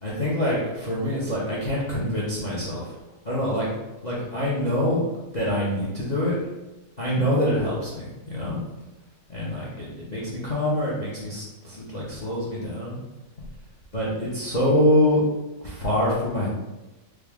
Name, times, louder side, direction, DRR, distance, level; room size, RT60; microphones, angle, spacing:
voice 1, 0.0-2.9 3.2-3.7 4.0-5.0 5.3-6.4 7.0-8.6 9.3-13.0 13.9-15.2 15.6-16.5, left 1 dB, 45° left, -6 dB, 0.5 m, -25 dB
4.5 x 2.5 x 3.5 m, 1.1 s
omnidirectional pair, 1.9 m